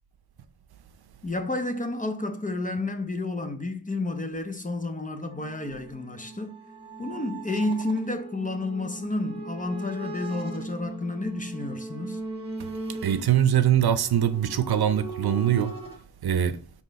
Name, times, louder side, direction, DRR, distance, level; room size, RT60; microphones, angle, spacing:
voice 1, 1.2-6.6 7.0-12.2, left 2 dB, 20° left, 0.6 m, -31 dB
sound 1, 5.3-16.0, right 3 dB, 15° right, 1.4 m, -39 dB
voice 2, 13.0-15.7 16.2-16.6, right 10 dB, 65° right, 0.7 m, -22 dB
5.9 x 3.1 x 5.2 m
wide cardioid pair, 125°, 40 cm